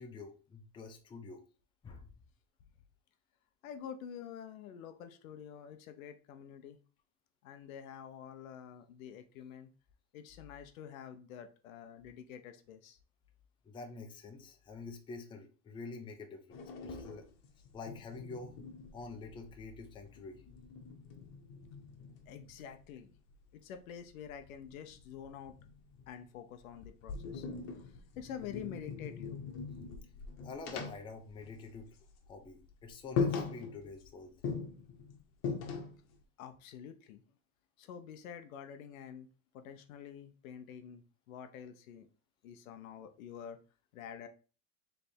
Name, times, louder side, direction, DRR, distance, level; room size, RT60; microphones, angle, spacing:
voice 1, 0.0-1.4 1.8-2.1 13.7-17.3 17.7-18.6 18.9-20.4 30.4-31.9 32.3-34.3, left 3 dB, 15° left, 4 dB, 0.5 m, -47 dB
voice 2, 3.6-6.8 7.4-9.7 10.1-13.0 22.3-23.1 23.5-25.6 26.1-27.5 27.8-29.4 36.4-37.2 37.8-39.3 39.5-42.1 42.4-43.6 43.9-44.3, left 8 dB, 85° left, 8 dB, 0.8 m, -48 dB
sound 1, 16.5-19.6 20.0-22.9 24.2-26.3 26.7-32.0 32.2-32.4 32.8-32.9 33.2-34.1 34.4-36.1, left 5 dB, 40° left, 0.9 m, -41 dB
3.4 x 3.4 x 4.2 m, 0.37 s
supercardioid pair, 140°, 40 cm